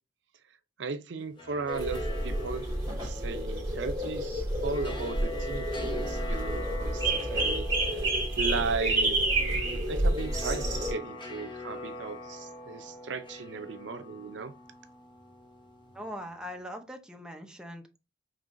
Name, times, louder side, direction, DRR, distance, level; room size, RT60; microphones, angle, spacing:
voice 1, 0.8-2.7 3.0-14.5, right 4 dB, 80° right, 0.5 m, -36 dB
sound 1, 1.2-16.4, left 1 dB, 30° left, 0.9 m, -43 dB
sound 2, 1.7-10.9, right 1 dB, 20° right, 1.6 m, -29 dB
voice 2, 15.9-18.0, equal, 5° right, 0.6 m, -41 dB
5.3 x 3.0 x 2.5 m
head